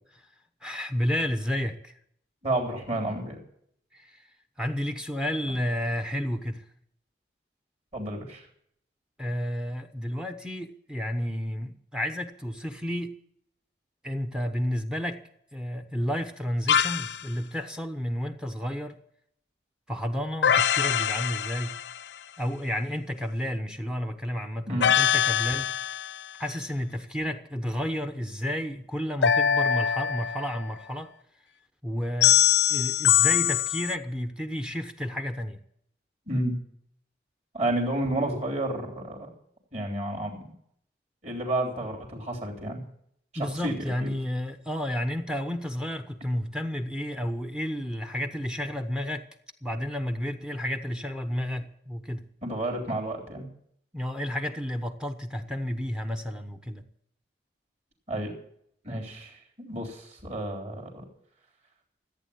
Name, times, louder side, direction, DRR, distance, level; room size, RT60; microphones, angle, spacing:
voice 1, 0.6-1.9 3.9-4.2 4.6-6.6 9.2-13.2 14.0-15.2 15.5-19.0 19.9-21.8 22.4-25.7 26.4-31.1 31.8-32.4 32.7-35.6 43.4-49.3 49.6-52.3 53.9-56.9, equal, 5° right, 7 dB, 0.9 m, -31 dB
voice 2, 2.4-3.4 7.9-8.5 24.7-24.9 36.3-36.5 37.5-39.3 39.7-40.5 41.2-42.8 43.3-44.1 52.4-53.5 58.1-58.4 58.8-61.0, right 1 dB, 35° right, 0 dB, 3.5 m, -31 dB
sound 1, 16.7-17.2 20.4-22.1 24.8-26.2 29.2-30.7 32.2-33.9, left 9 dB, 75° left, 0.6 m, -23 dB
15.0 x 8.9 x 8.5 m, 0.69 s
head